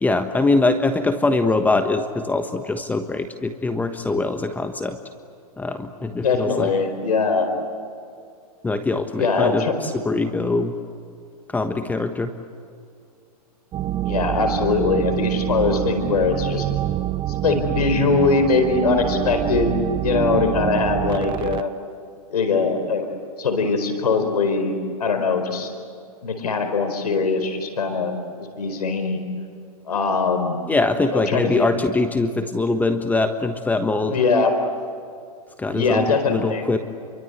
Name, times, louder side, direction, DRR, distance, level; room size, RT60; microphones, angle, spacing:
voice 1, 0.0-5.0 5.6-6.7 8.6-10.7 11.5-12.3 30.7-34.2 35.6-36.8, left 3 dB, 10° left, 7 dB, 1.3 m, -22 dB
voice 2, 6.2-7.5 9.2-9.7 14.1-16.7 17.3-21.7 22.3-23.1 23.4-24.7 25.0-25.7 26.2-28.1 28.6-29.2 29.9-30.6 31.1-31.7 34.1-34.5 35.7-36.6, left 4 dB, 85° left, 7 dB, 4.7 m, -21 dB
sound 1, 13.7-21.6, right 13 dB, 25° right, 0.8 m, -26 dB
30.0 x 24.0 x 8.2 m, 2.3 s
hypercardioid pair, 125°, 19 cm